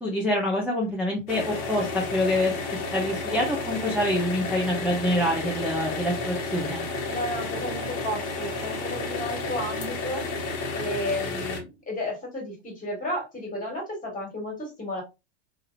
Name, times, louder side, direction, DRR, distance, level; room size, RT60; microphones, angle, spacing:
voice 1, 0.0-6.8, left 1 dB, 5° right, -5 dB, 0.7 m, -26 dB
sound 1, 1.3-11.6, left 3 dB, 55° left, 1.0 m, -31 dB
voice 2, 7.1-10.2 10.7-15.0, left 1 dB, 20° left, 1 dB, 1.8 m, -33 dB
2.7 x 2.7 x 2.5 m, 0.25 s
hypercardioid pair, 110°, 36 cm